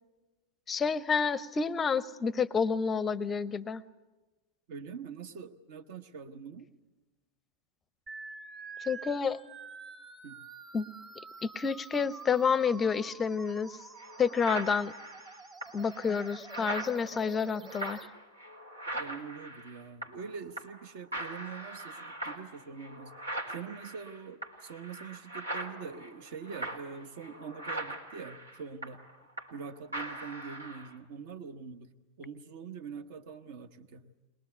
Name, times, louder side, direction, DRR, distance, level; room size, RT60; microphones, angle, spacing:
voice 1, 0.7-3.8 8.9-9.4 10.7-10.9 11.4-13.8 14.2-14.9 15.7-18.0, left 5 dB, 20° left, 19 dB, 0.7 m, -29 dB
voice 2, 4.7-6.7 10.2-10.4 18.9-23.1 23.5-29.0 29.5-31.9 32.2-34.1, right 6 dB, 50° right, 11 dB, 1.1 m, -44 dB
sound 1, 8.1-18.1, right 4 dB, 25° right, 1.3 m, -48 dB
sound 2, 13.5-13.6 14.0-20.3 20.6-20.8 21.1-29.6 29.9-30.9, right 1 dB, 80° right, 2.3 m, -41 dB
22.0 x 21.0 x 8.0 m, 1.1 s
figure-of-eight pair, 90°, 0 cm